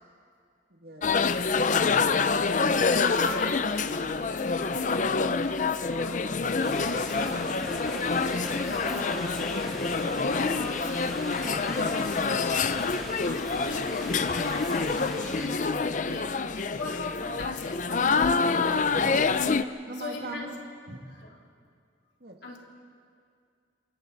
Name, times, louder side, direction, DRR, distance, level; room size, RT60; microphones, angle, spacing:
voice 1, 0.7-1.1 19.9-20.6 20.9-21.0 22.2-22.6, right 2 dB, 60° right, 2 dB, 2.2 m, -40 dB
sound 1, 1.0-19.6, left 4 dB, 45° left, 0.5 m, -27 dB
voice 2, 2.3-18.8 19.9-20.5 21.1-21.4 22.4-22.6, left 2 dB, 75° left, -2 dB, 3.6 m, -39 dB
sound 2, 6.6-15.5, equal, ahead, 3.6 m, -40 dB
27.5 x 24.0 x 4.0 m, 2.2 s
head